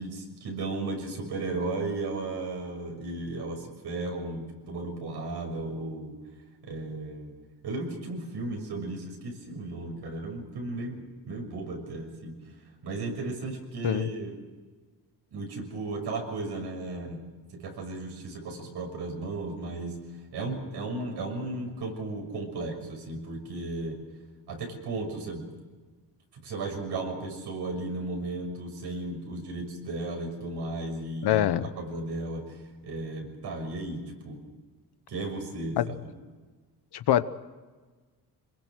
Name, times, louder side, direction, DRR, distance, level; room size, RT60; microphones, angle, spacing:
voice 1, 0.0-6.1 6.6-7.3 7.6-12.4 12.8-14.4 15.3-17.2 17.5-20.0 20.3-24.0 24.5-25.5 26.4-34.4 35.1-36.1, right 2 dB, 75° right, 6.5 m, -35 dB
voice 2, 31.2-31.7 35.8-35.9 36.9-37.2, left 12 dB, 75° left, 1.1 m, -24 dB
26.0 x 21.5 x 6.4 m
cardioid pair, 135°, 40 cm